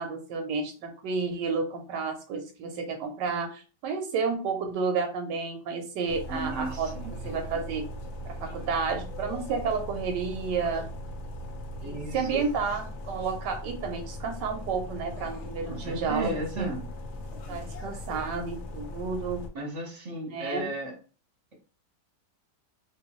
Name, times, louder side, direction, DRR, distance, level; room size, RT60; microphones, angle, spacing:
voice 1, 0.0-6.9 7.2-7.9 8.2-10.9 11.8-16.7 17.5-19.4 20.3-20.7, right 5 dB, 85° right, 5 dB, 1.2 m, -31 dB
sound 1, 6.1-19.5, left 1 dB, 70° left, 0.6 m, -39 dB
voice 2, 6.3-7.1 11.8-12.4 15.7-16.9 19.5-21.0, right 2 dB, 30° right, -1 dB, 0.9 m, -34 dB
3.1 x 2.7 x 2.9 m, 0.36 s
omnidirectional pair, 1.9 m